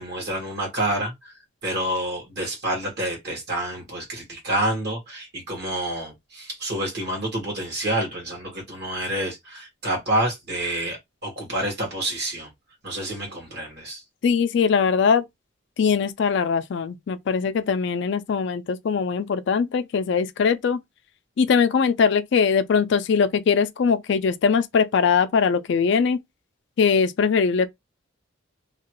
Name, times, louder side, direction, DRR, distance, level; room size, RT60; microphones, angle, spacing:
voice 1, 0.0-1.3 1.6-12.5 12.8-14.0, right 1 dB, 55° right, 1.4 m, -28 dB
voice 2, 14.2-15.3 15.8-20.8 21.4-26.2 26.8-27.7, left 6 dB, 60° left, 0.4 m, -21 dB
2.8 x 2.3 x 3.0 m
head